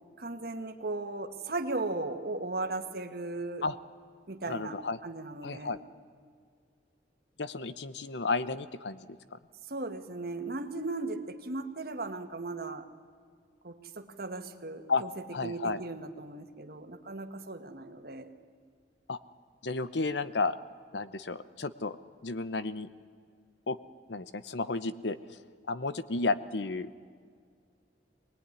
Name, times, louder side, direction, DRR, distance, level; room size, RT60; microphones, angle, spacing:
voice 1, 0.2-3.6 4.3-5.8 9.7-12.9 13.6-15.1 15.4-18.3, right 2 dB, 55° right, 6 dB, 1.6 m, -37 dB
voice 2, 4.5-5.0 5.4-5.8 7.4-9.4 14.9-15.0 15.3-15.8 19.1-19.2 19.6-20.6 20.9-22.0 22.2-22.9 23.7-23.8 24.1-25.2 25.7-26.9, left 3 dB, 75° left, 14 dB, 0.9 m, -32 dB
23.5 x 19.5 x 9.8 m, 2.1 s
head